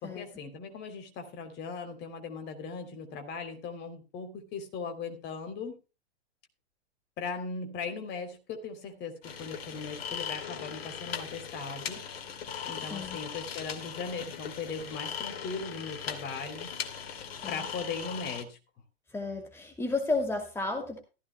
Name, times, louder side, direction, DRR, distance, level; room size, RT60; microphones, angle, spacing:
voice 1, 0.0-5.8 7.2-12.0 12.7-16.7 17.5-18.6, left 4 dB, 30° left, 6 dB, 3.2 m, -39 dB
sound 1, 9.2-18.4, left 7 dB, 55° left, 2.6 m, -39 dB
voice 2, 19.1-21.0, left 3 dB, 5° left, 4 dB, 2.4 m, -32 dB
15.0 x 15.0 x 2.2 m, 0.30 s
figure-of-eight pair, 110°, 34 cm